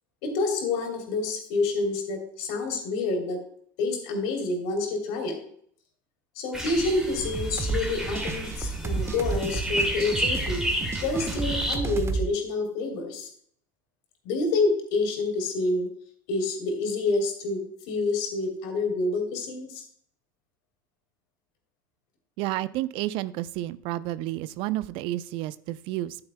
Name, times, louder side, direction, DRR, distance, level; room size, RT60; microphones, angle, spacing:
voice 1, 0.2-3.4 3.8-5.4 6.3-10.6 11.0-13.3 14.2-15.9 16.3-19.8, left 3 dB, 60° left, 4 dB, 3.2 m, -28 dB
sound 1, 6.5-11.7, equal, 5° right, 2.5 m, -31 dB
sound 2, 7.3-12.3, right 4 dB, 25° right, 1.1 m, -31 dB
voice 2, 22.4-26.2, right 15 dB, 50° right, 16 dB, 0.5 m, -31 dB
10.5 x 9.6 x 2.2 m, 0.62 s
hypercardioid pair, 80°, 11 cm